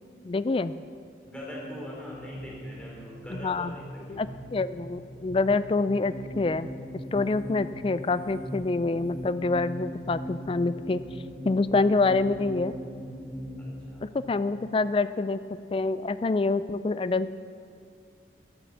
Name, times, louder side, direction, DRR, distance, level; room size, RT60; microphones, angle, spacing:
voice 1, 0.2-0.7 3.3-3.7 4.1-6.7 7.1-11.0 11.4-12.7 14.0-15.4 15.7-17.4, left 3 dB, 30° left, 14 dB, 0.3 m, -26 dB
voice 2, 1.2-4.4 13.9-14.0, left 1 dB, 5° left, -4 dB, 3.2 m, -43 dB
sound 1, 1.3-13.8, equal, 75° left, 3.9 m, -40 dB
12.5 x 10.5 x 7.1 m, 2.3 s
head